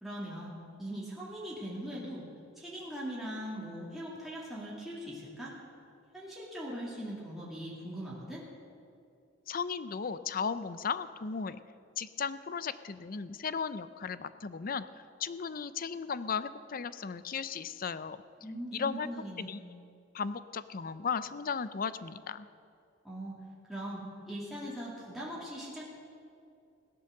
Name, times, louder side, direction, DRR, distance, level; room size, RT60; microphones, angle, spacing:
voice 1, 0.0-0.5 0.8-2.2 2.6-5.5 6.1-8.4 18.4-19.6 23.0-23.4 23.7-25.8, equal, ahead, -7 dB, 2.7 m, -40 dB
voice 2, 9.5-11.6 12.0-18.2 18.7-19.6 20.1-22.5, left 6 dB, 50° left, 14 dB, 0.5 m, -36 dB
17.0 x 11.0 x 6.7 m, 2.6 s
head